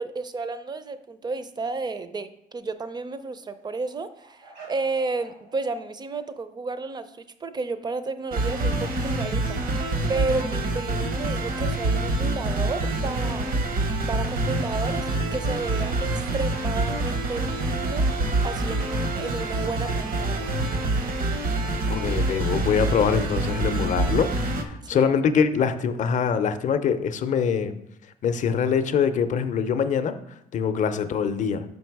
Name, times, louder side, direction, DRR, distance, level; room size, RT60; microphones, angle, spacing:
voice 1, 0.0-4.4 4.7-7.1 7.4-13.7 14.1-20.5 24.8-25.2, right 3 dB, 25° right, 12 dB, 0.5 m, -32 dB
sound 1, 2.5-2.8 3.3-5.8 6.1-6.3 9.6-11.9, right 3 dB, 90° right, 2.6 m, -50 dB
sound 2, 8.3-24.6, right 2 dB, 55° right, 0.9 m, -26 dB
sound 3, 14.4-23.8, right 3 dB, 75° right, 1.1 m, -45 dB
voice 2, 21.9-24.3 24.9-27.7 28.2-30.2 30.5-31.6, left 7 dB, 45° left, 10 dB, 0.5 m, -23 dB
5.7 x 5.3 x 4.6 m, 0.81 s
cardioid pair, 110°, 17 cm